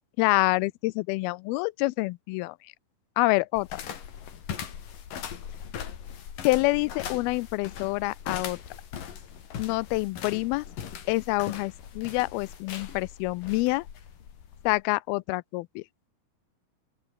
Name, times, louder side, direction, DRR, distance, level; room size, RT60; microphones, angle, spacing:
voice 1, 0.2-2.6 3.2-3.8 6.4-8.6 9.6-10.7 11.1-13.9 14.6-15.8, left 22 dB, 85° left, 2.4 m, -27 dB
sound 1, 3.6-14.8, left 8 dB, 60° left, 4.2 m, -40 dB
open air
omnidirectional pair, 4.4 m